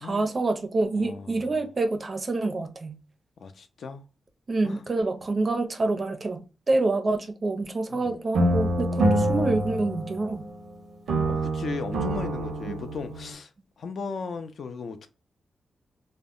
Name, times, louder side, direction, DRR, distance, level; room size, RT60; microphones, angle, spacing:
voice 1, 0.0-3.0 4.5-6.4 6.7-10.4 12.7-12.8, right 2 dB, 35° right, 0.4 m, -27 dB
voice 2, 0.9-1.4 3.4-4.1 4.6-4.8 7.9-8.2 11.2-13.5 13.8-15.1, left 4 dB, 60° left, 0.4 m, -36 dB
sound 1, 8.3-10.7 11.1-13.3, right 1 dB, 85° right, 0.5 m, -26 dB
2.0 x 2.0 x 3.6 m
cardioid pair, 105°, 0 cm